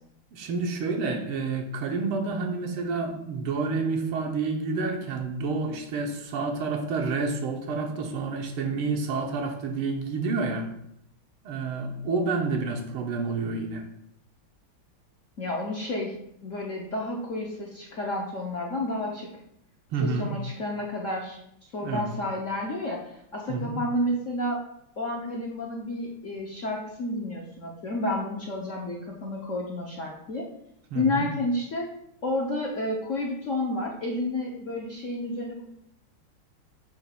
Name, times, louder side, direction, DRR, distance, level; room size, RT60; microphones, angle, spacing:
voice 1, 0.3-10.7 11.4-13.8 19.9-20.3 21.8-22.1 23.5-23.7 30.9-31.3, right 4 dB, 85° right, 3 dB, 1.8 m, -29 dB
voice 2, 15.4-16.1 16.4-19.3 20.0-21.4 21.7-24.6 25.0-30.5 30.9-31.9 32.2-35.6, left 1 dB, 55° left, -2 dB, 0.8 m, -30 dB
7.0 x 3.0 x 5.8 m, 0.76 s
omnidirectional pair, 2.3 m